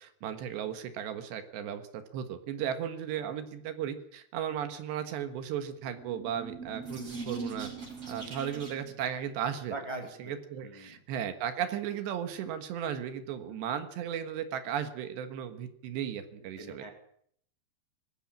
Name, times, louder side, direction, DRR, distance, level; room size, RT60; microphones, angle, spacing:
voice 1, 0.0-1.8 2.1-7.7 8.1-9.7 10.2-16.8, right 9 dB, 75° right, 8 dB, 3.6 m, -35 dB
sound 1, 6.0-9.0, right 4 dB, 35° right, 6.5 m, -41 dB
voice 2, 9.7-11.0 13.5-13.7 16.6-16.9, right 2 dB, 10° left, 2 dB, 2.4 m, -42 dB
20.5 x 15.0 x 8.7 m, 0.66 s
omnidirectional pair, 5.0 m